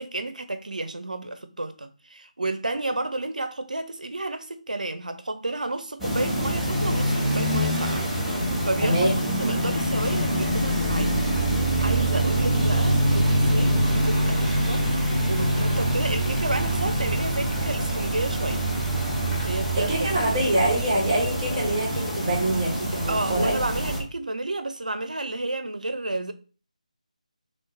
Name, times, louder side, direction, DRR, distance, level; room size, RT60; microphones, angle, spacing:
voice 1, 0.0-8.1 8.4-11.3 11.6-18.7 19.4-19.9 23.1-26.3, right 2 dB, 75° right, 0.7 m, -31 dB
sound 1, 6.0-24.0, right 1 dB, ahead, 1.1 m, -25 dB
voice 2, 8.8-9.1 19.8-23.6, right 1 dB, 25° right, 2.0 m, -25 dB
3.6 x 3.2 x 4.1 m
figure-of-eight pair, 155°, 4 cm